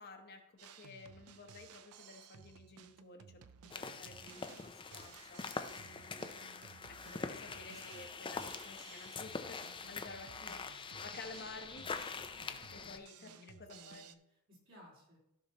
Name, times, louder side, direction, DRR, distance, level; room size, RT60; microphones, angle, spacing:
voice 1, 0.0-3.4 3.8-6.4 6.9-9.6 9.9-12.3 12.7-14.0, left 3 dB, 45° left, 4 dB, 1.0 m, -53 dB
Drum kit, 0.6-14.1, right 7 dB, 75° right, 0.5 m, -58 dB
sound 1, 3.7-13.0, left 4 dB, 20° left, 0.5 m, -44 dB
voice 2, 12.8-15.2, left 1 dB, 60° right, -4 dB, 3.7 m, -61 dB
14.5 x 5.7 x 2.9 m, 0.83 s
head